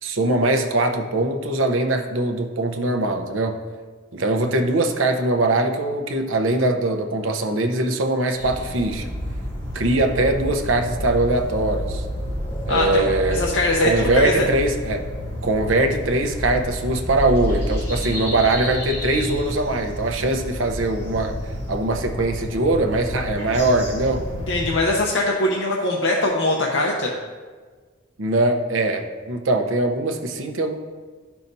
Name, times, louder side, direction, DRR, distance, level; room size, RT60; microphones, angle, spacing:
voice 1, 0.0-3.6 4.1-9.1 9.7-12.0 12.7-13.5 13.8-15.0 15.4-21.3 21.7-24.2 28.2-30.8, right 2 dB, 80° right, 5 dB, 0.8 m, -22 dB
sound 1, 8.3-24.8, equal, 15° left, 2.0 m, -30 dB
voice 2, 12.7-14.5 24.5-27.1, left 2 dB, 75° left, -2 dB, 0.8 m, -21 dB
12.0 x 5.7 x 2.7 m, 1.5 s
head